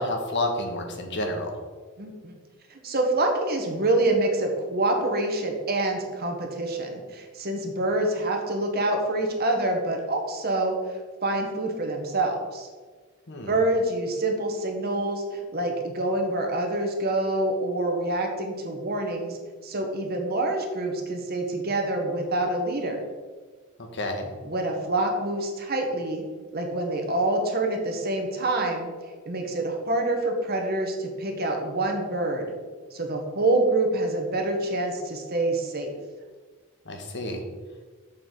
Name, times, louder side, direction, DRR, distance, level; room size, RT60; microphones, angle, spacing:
voice 1, 0.0-1.6 13.3-13.5 23.8-24.3 36.9-37.4, left 1 dB, 55° left, 3 dB, 1.4 m, -30 dB
voice 2, 2.0-2.3 2.7-12.7 13.5-19.4 19.6-23.0 24.4-26.2 26.5-28.9 29.2-32.4 32.9-35.9, right 2 dB, 45° right, 3 dB, 1.5 m, -26 dB
7.1 x 7.0 x 5.3 m, 1.4 s
head